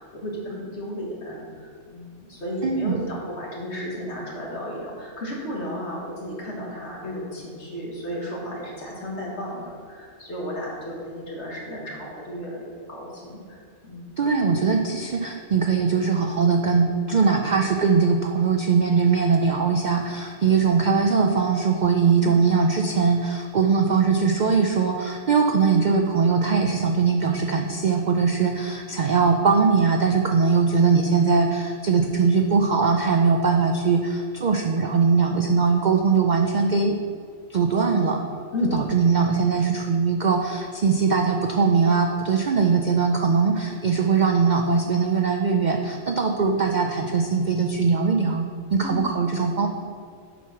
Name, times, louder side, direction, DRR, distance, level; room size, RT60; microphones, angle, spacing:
voice 1, 0.0-14.2 14.5-14.7 22.2-22.3 38.5-38.8 48.8-49.0, left 1 dB, 55° left, -3 dB, 1.9 m, -33 dB
voice 2, 2.6-3.0 14.2-37.0 37.5-38.2 38.7-48.4 48.7-49.7, right 5 dB, 75° right, 4 dB, 0.4 m, -21 dB
7.9 x 4.6 x 5.8 m, 2.2 s
omnidirectional pair, 1.4 m